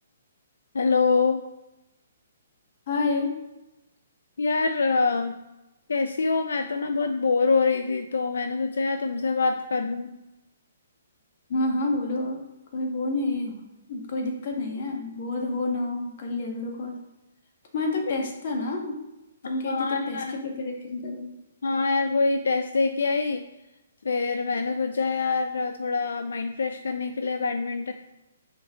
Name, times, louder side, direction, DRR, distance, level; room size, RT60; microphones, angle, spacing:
voice 1, 0.7-1.4 4.4-5.4 5.9-10.1 19.4-20.4 21.6-23.4 24.0-27.9, left 4 dB, 85° left, 7 dB, 0.5 m, -25 dB
voice 2, 2.9-3.4 11.5-12.4 12.7-13.6 13.9-17.0 17.7-19.0 19.4-21.3, left 2 dB, 50° left, 2 dB, 1.6 m, -29 dB
6.5 x 4.5 x 3.7 m, 0.96 s
hypercardioid pair, 150°, 0 cm